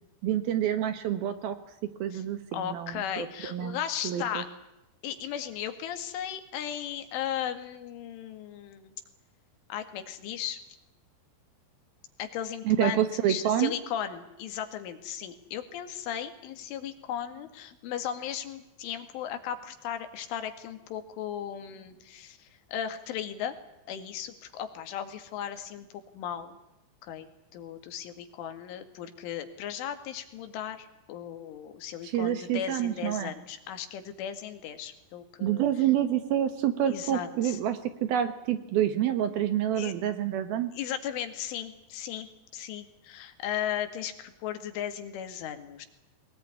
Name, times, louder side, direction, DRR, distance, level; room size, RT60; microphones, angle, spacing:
voice 1, 0.2-1.6 2.0-3.8 4.0-4.4 12.6-13.7 32.0-33.3 35.4-40.7, right 11 dB, 65° right, 10 dB, 2.6 m, -28 dB
voice 2, 2.5-4.5 5.0-8.9 9.7-10.6 12.2-23.6 23.9-25.9 26.1-26.6 27.0-27.3 27.5-35.6 36.9-37.6 39.8-39.9 40.7-45.9, left 9 dB, 90° left, 8 dB, 4.5 m, -36 dB
22.0 x 20.0 x 9.8 m, 0.92 s
omnidirectional pair, 5.4 m